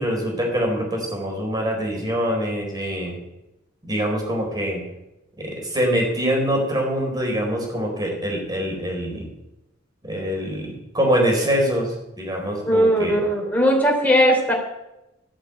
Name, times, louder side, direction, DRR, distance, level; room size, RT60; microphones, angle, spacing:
voice 1, 0.0-3.2 3.8-4.8 5.4-9.3 10.0-13.2, equal, 20° right, 1 dB, 4.3 m, -24 dB
voice 2, 12.6-14.5, equal, 10° left, 0 dB, 3.5 m, -18 dB
14.0 x 8.0 x 8.1 m, 0.92 s
head